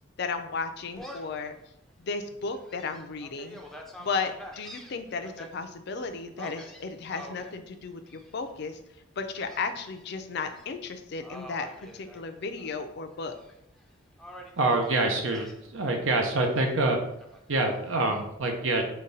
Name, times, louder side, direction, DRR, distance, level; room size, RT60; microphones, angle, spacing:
voice 1, 0.2-1.6 2.0-3.6 4.0-8.8 9.2-13.3, left 4 dB, 60° left, 8 dB, 0.4 m, -34 dB
Gull seagull, 1.0-1.4 1.9-2.0 2.5-5.5 6.4-7.5 8.1-8.5 9.4-10.1 10.4-10.7 11.2-12.8 13.1-13.8 14.2-15.6 16.8-17.8, equal, ahead, 0.5 m, -46 dB
voice 2, 14.6-15.5 15.7-17.0 17.5-18.8, right 2 dB, 85° right, 3 dB, 0.7 m, -25 dB
5.1 x 2.3 x 4.0 m, 0.79 s
head